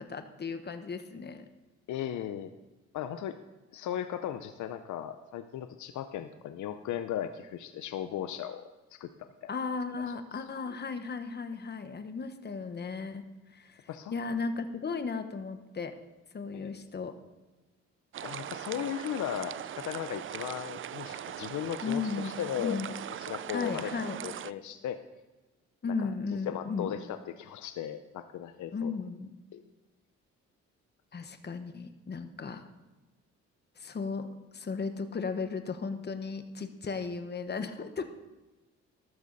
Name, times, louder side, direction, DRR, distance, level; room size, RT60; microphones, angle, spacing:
voice 1, 0.0-1.5 9.5-13.2 13.5-16.0 16.3-17.1 21.8-22.3 22.6-22.9 23.5-24.2 25.8-26.9 28.7-29.3 31.1-32.6 33.8-34.3 34.5-38.0, left 4 dB, 35° left, 8 dB, 1.3 m, -35 dB
voice 2, 1.9-2.5 2.9-3.4 3.7-9.1 9.4-9.5 10.3-10.4 13.9-14.1 16.5-16.7 18.2-22.8 23.2-23.9 24.2-25.0 26.0-26.1 26.4-29.0 29.5-29.6, left 10 dB, 75° left, 9 dB, 0.8 m, -37 dB
sound 1, 18.1-24.5, right 10 dB, 45° right, 0.5 m, -40 dB
14.0 x 12.5 x 4.1 m, 1.2 s
cardioid pair, 90°, 30 cm